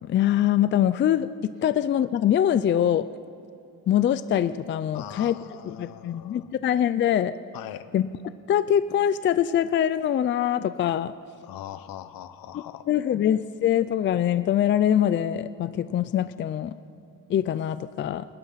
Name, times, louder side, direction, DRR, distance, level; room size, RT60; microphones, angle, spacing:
voice 1, 0.0-3.1 3.9-5.4 5.7-7.3 7.9-8.1 8.5-11.1 12.5-16.7 17.3-18.3, left 10 dB, 35° left, 13 dB, 0.4 m, -23 dB
voice 2, 4.9-6.5 7.5-7.9 11.4-12.9, left 11 dB, 80° left, 12 dB, 1.2 m, -41 dB
28.5 x 21.0 x 5.8 m, 2.6 s
cardioid pair, 180°, 34 cm